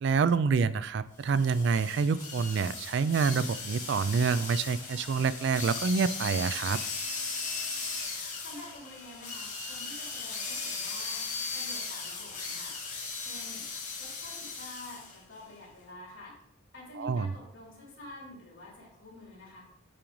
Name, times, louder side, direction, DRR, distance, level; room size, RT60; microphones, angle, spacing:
voice 1, 0.0-6.8 17.0-17.3, right 5 dB, 55° right, 15 dB, 0.3 m, -27 dB
sound 1, 1.2-15.2, left 4 dB, 35° left, 1.6 m, -37 dB
voice 2, 8.4-11.2 11.5-12.8 13.2-13.7 14.0-16.4 16.7-19.6, left 2 dB, 70° left, -3 dB, 2.9 m, -48 dB
8.9 x 4.9 x 3.0 m, 0.69 s
head